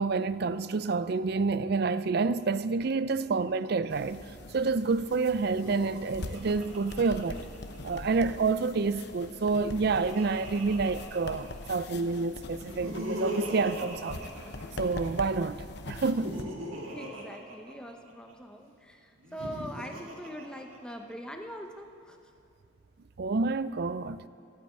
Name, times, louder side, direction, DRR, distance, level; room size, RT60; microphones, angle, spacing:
voice 1, 0.0-7.4 7.8-14.3 14.8-16.4 23.2-24.2, right 4 dB, 50° right, 0.4 m, -28 dB
sound 1, 3.9-16.4, left 2 dB, 55° left, 0.9 m, -43 dB
Laughter, 5.4-8.0 9.3-11.7 12.5-15.1 15.9-18.3 19.2-21.1, right 1 dB, 90° right, 2.1 m, -39 dB
voice 2, 16.9-22.2, equal, 5° left, 0.8 m, -42 dB
14.0 x 8.7 x 8.9 m
head